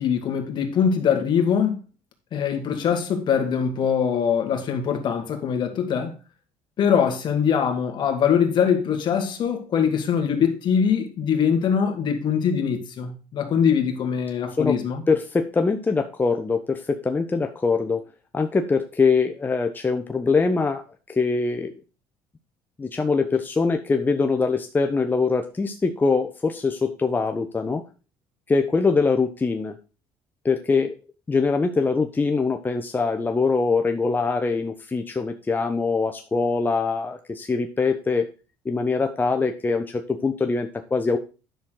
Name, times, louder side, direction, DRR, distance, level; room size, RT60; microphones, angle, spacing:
voice 1, 0.0-1.8 2.3-6.1 6.8-15.0, left 7 dB, 50° left, 2.0 m, -22 dB
voice 2, 15.1-18.0 18.3-21.7 22.8-27.8 28.5-29.8 30.4-31.0 31.3-38.3 38.6-41.2, left 4 dB, 20° left, 0.9 m, -23 dB
10.5 x 6.4 x 3.9 m
supercardioid pair, 100°, 10 cm